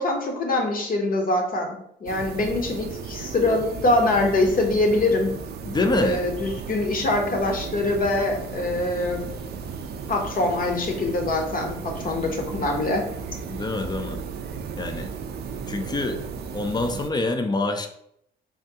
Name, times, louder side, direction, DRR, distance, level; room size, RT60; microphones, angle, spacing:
voice 1, 0.0-5.3 6.0-9.3 10.1-11.8 12.0-13.0, left 2 dB, 45° left, 2 dB, 0.8 m, -24 dB
sound 1, 2.1-17.1, right 5 dB, 55° right, 0.4 m, -35 dB
voice 2, 5.7-6.2 13.5-14.2 14.8-15.1 15.7-16.2 16.5-17.9, left 2 dB, 20° left, 6 dB, 0.4 m, -25 dB
3.4 x 2.2 x 2.7 m, 0.73 s
cardioid pair, 90°, 20 cm